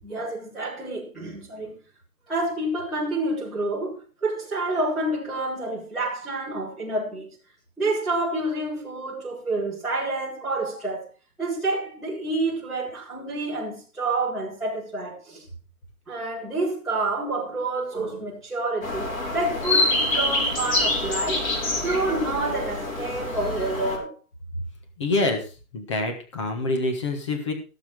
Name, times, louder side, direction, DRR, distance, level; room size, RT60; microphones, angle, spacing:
voice 1, 0.0-1.8 2.3-7.3 7.8-11.1 11.4-15.4 16.1-21.5 21.8-24.1, right 2 dB, ahead, 3.6 m, -28 dB
sound 1, 18.8-24.0, left 2 dB, 65° left, 5.4 m, -26 dB
voice 2, 25.0-25.4 25.7-27.5, left 2 dB, 20° left, 1.4 m, -26 dB
16.0 x 7.5 x 4.6 m
hypercardioid pair, 175°, 44 cm